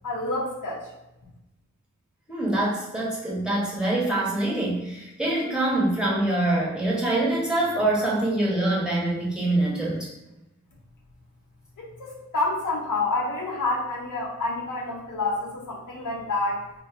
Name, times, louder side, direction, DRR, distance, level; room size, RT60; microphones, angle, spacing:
voice 1, 0.0-0.9 11.8-16.6, left 2 dB, 80° left, -4 dB, 0.8 m, -28 dB
voice 2, 2.3-10.1, right 2 dB, 5° right, -6 dB, 1.2 m, -25 dB
2.6 x 2.2 x 3.6 m, 0.92 s
cardioid pair, 55°, 31 cm